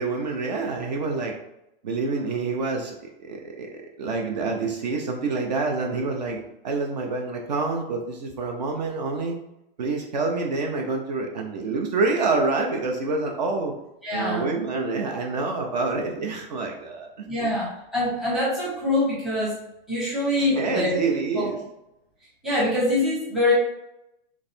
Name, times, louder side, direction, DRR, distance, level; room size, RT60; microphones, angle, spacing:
voice 1, 0.0-1.3 1.8-2.9 3.2-3.7 4.0-9.4 9.8-13.7 14.1-17.1 17.4-17.5 20.6-21.6, right 3 dB, 45° right, 1 dB, 0.6 m, -27 dB
voice 2, 14.0-14.5 17.2-19.5 19.9-21.0 21.3-21.5 22.4-23.5, left 1 dB, ahead, -8 dB, 0.8 m, -24 dB
3.4 x 3.1 x 4.1 m, 0.86 s
hypercardioid pair, 175°, 29 cm